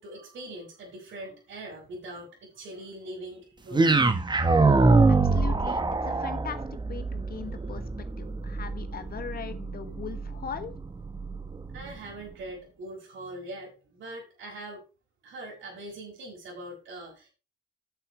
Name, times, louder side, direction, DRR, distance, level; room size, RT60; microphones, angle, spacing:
voice 1, 0.0-3.9 11.7-14.8 15.2-17.3, right 1 dB, 70° right, -5 dB, 5.1 m, -42 dB
sound 1, 3.7-11.9, right 3 dB, 20° right, 1.3 m, -25 dB
voice 2, 5.1-7.8 8.2-10.8, left 7 dB, 50° left, 10 dB, 1.4 m, -39 dB
8.2 x 7.7 x 5.0 m, 0.31 s
cardioid pair, 90°, 20 cm